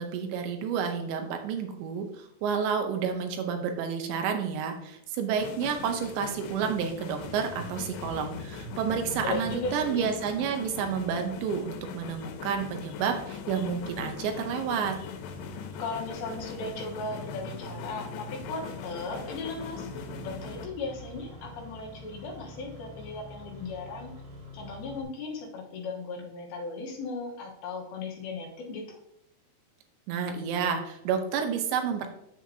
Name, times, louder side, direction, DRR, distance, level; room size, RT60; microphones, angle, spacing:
voice 1, 0.0-15.0 30.1-32.1, right 7 dB, 80° right, 5 dB, 3.0 m, -30 dB
sound 1, 5.4-20.7, left 8 dB, 90° left, 3.1 m, -41 dB
Engine starting, 7.0-25.0, right 1 dB, 60° right, 1.2 m, -46 dB
voice 2, 9.2-10.2 15.8-19.9 20.2-24.1 24.5-28.8, left 3 dB, 70° left, -1 dB, 2.7 m, -37 dB
7.7 x 7.3 x 2.8 m, 0.79 s
omnidirectional pair, 5.2 m